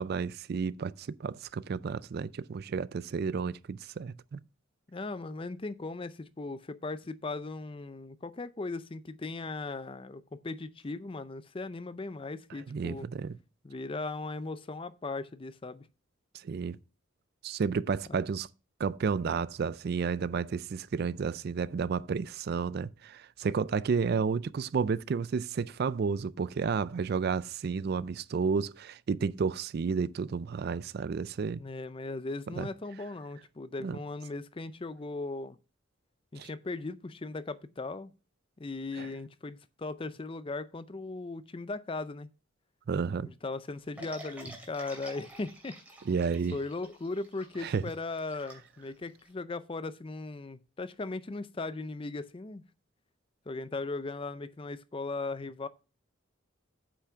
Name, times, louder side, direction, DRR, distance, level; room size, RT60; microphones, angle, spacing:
voice 1, 0.0-4.4 12.7-13.4 16.3-16.8 17.4-18.5 18.8-31.6 32.6-32.7 33.8-34.0 36.4-36.5 39.0-39.1 42.9-43.3 46.1-46.6 47.6-47.8, right 5 dB, 50° right, 0.3 m, -31 dB
voice 2, 4.9-13.1 13.6-15.8 18.1-18.2 31.6-35.6 36.3-38.1 38.6-42.3 43.2-45.8 46.5-52.6 53.5-55.7, left 3 dB, 25° left, 0.5 m, -38 dB
sound 1, 44.0-49.3, right 1 dB, 5° right, 2.5 m, -49 dB
8.4 x 5.9 x 5.6 m
head